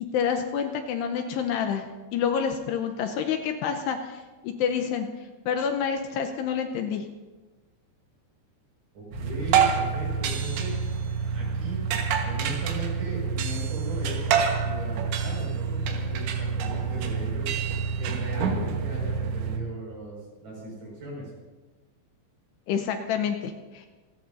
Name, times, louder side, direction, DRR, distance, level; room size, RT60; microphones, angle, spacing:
voice 1, 0.1-1.8 2.1-5.1 5.5-7.1 22.7-23.9, left 7 dB, 80° left, 5 dB, 2.7 m, -28 dB
voice 2, 8.9-10.7 11.3-11.8 12.2-17.5 18.0-21.3, right 1 dB, 45° right, -3 dB, 7.1 m, -38 dB
sound 1, 9.1-19.6, right 6 dB, 85° right, 3.6 m, -27 dB
27.0 x 14.5 x 2.7 m, 1.3 s
omnidirectional pair, 5.2 m